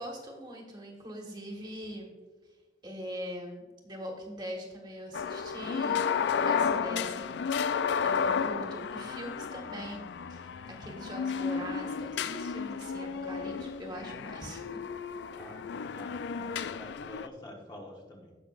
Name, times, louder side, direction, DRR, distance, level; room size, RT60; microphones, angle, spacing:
voice 1, 0.0-2.1 2.8-7.4 7.7-14.8, equal, 25° right, 0 dB, 1.6 m, -42 dB
sound 1, 5.1-17.3, left 6 dB, 75° left, 0.4 m, -32 dB
voice 2, 15.4-18.4, left 1 dB, 25° left, -1 dB, 1.2 m, -48 dB
18.0 x 6.0 x 2.5 m, 1.3 s
head